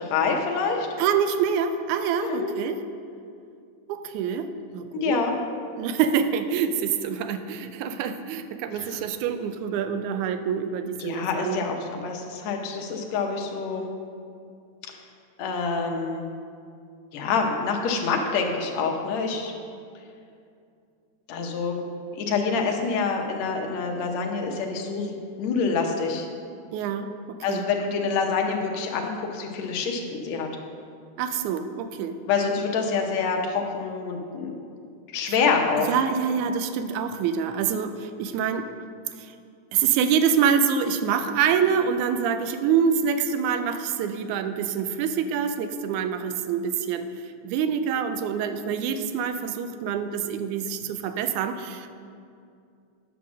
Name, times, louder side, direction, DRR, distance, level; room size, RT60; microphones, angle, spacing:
voice 1, 0.0-0.9 2.2-2.5 4.9-5.4 8.8-8.9 11.0-13.9 15.4-16.3 17.1-19.5 21.3-21.8 22.1-25.1 25.4-26.3 27.4-30.5 32.3-34.5 35.1-35.9, left 5 dB, 70° left, 2 dB, 1.9 m, -26 dB
voice 2, 1.0-2.8 3.9-5.2 5.8-11.7 26.7-27.7 31.2-32.2 35.3-35.4 35.8-38.7 39.2-39.3 39.7-51.9, right 7 dB, 80° right, 9 dB, 1.9 m, -26 dB
9.4 x 5.8 x 6.1 m, 2.4 s
omnidirectional pair, 3.6 m